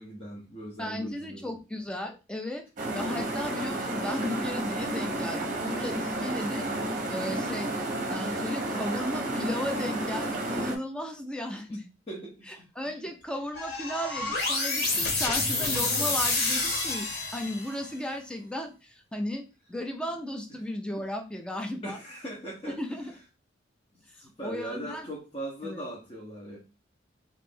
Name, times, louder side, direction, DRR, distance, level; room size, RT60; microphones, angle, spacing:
voice 1, 0.0-1.5 12.1-12.7 20.5-20.6 21.8-22.8 24.0-26.6, right 1 dB, 30° left, -5 dB, 0.8 m, -40 dB
voice 2, 0.8-2.6 2.9-6.7 7.1-7.7 8.1-11.8 12.5-22.0 22.6-23.1 24.4-25.1 25.6-25.8, left 1 dB, 5° left, 4 dB, 0.5 m, -35 dB
sound 1, 2.8-10.8, right 1 dB, 45° right, 0.7 m, -31 dB
sound 2, 13.5-17.8, left 3 dB, 55° left, 1.6 m, -28 dB
3.1 x 2.5 x 3.4 m, 0.30 s
head